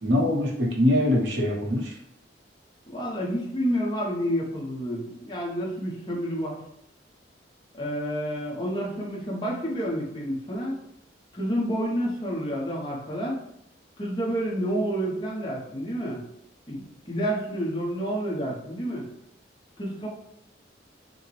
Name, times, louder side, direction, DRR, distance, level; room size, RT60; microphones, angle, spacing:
voice 1, 0.0-1.9, left 1 dB, 80° right, 0 dB, 1.1 m, -23 dB
voice 2, 2.9-6.6 7.7-10.8 11.3-13.4 14.0-16.2 16.7-19.1 19.8-20.1, equal, 25° left, -3 dB, 1.0 m, -29 dB
6.3 x 2.2 x 3.2 m, 0.74 s
head